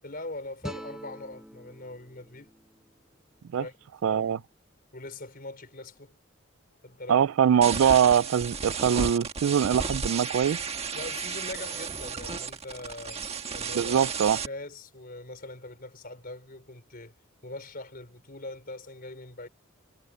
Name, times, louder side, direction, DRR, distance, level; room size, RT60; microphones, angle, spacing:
voice 1, 0.0-2.5 3.6-3.8 4.0-4.4 4.9-6.1 6.8-7.2 10.9-13.2 13.5-14.1 14.4-17.1 17.4-19.5, left 2 dB, 40° left, 4.8 m, -41 dB
sound 1, 0.6-3.8, equal, ahead, 4.5 m, -45 dB
voice 2, 4.0-4.4 7.1-10.6 13.7-14.4, right 8 dB, 65° right, 0.3 m, -23 dB
sound 2, 7.6-14.5, right 5 dB, 30° right, 1.5 m, -33 dB
head